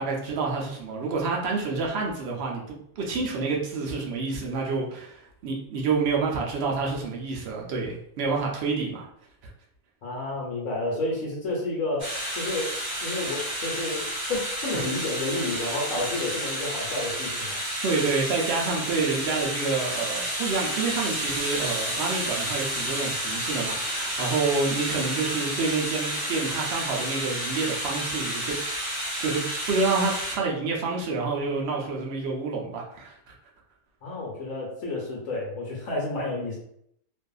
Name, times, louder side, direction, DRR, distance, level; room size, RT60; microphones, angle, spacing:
voice 1, 0.0-9.1 14.7-14.8 17.8-28.6 29.2-29.4 29.7-33.1, right 4 dB, 65° right, -1 dB, 0.6 m, -28 dB
voice 2, 10.0-12.1 12.4-12.7 13.0-17.6 34.0-36.5, left 2 dB, 65° left, -3 dB, 1.0 m, -30 dB
sound 1, 12.0-30.3, equal, 35° right, 1.1 m, -31 dB
2.6 x 2.4 x 2.3 m, 0.70 s
omnidirectional pair, 1.6 m